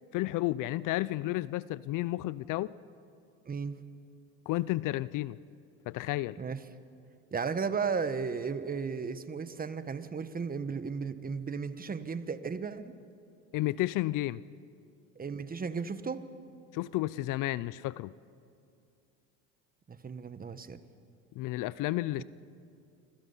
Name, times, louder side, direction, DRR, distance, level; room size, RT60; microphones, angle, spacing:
voice 1, 0.1-2.7 4.5-5.4 5.9-6.4 13.5-14.4 16.7-18.1 21.4-22.2, left 17 dB, 55° left, 19 dB, 0.6 m, -32 dB
voice 2, 3.5-3.8 6.4-6.6 7.3-12.9 15.2-16.3 19.9-20.8 22.2-22.3, right 5 dB, 25° right, 12 dB, 1.2 m, -35 dB
27.0 x 26.0 x 5.6 m, 2.4 s
supercardioid pair, 95°, 38 cm